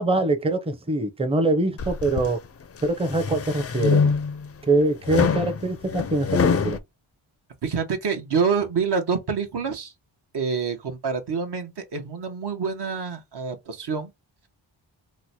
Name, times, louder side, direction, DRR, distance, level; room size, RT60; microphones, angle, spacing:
voice 1, 0.0-2.4 2.8-4.1 4.7-6.8, right 2 dB, 10° right, 0.6 m, -23 dB
sound 1, 1.8-2.3 2.8-4.5 5.0-6.8, left 5 dB, 35° left, 0.4 m, -24 dB
voice 2, 7.6-9.9 10.3-14.1, right 5 dB, 60° right, 0.9 m, -27 dB
3.0 x 2.1 x 4.0 m
wide cardioid pair, 80°, 47 cm